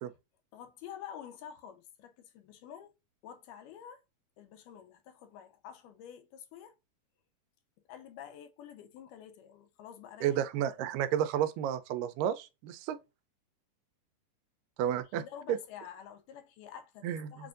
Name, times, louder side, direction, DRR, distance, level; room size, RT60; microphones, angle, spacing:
voice 1, 0.5-3.0 3.2-4.0 4.4-6.7 7.9-10.4 14.8-17.5, left 9 dB, 80° left, 2.1 m, -49 dB
voice 2, 10.2-13.0 14.8-15.2 15.5-15.6 17.0-17.3, right 10 dB, 85° right, 2.2 m, -31 dB
6.8 x 2.5 x 2.5 m
omnidirectional pair, 3.9 m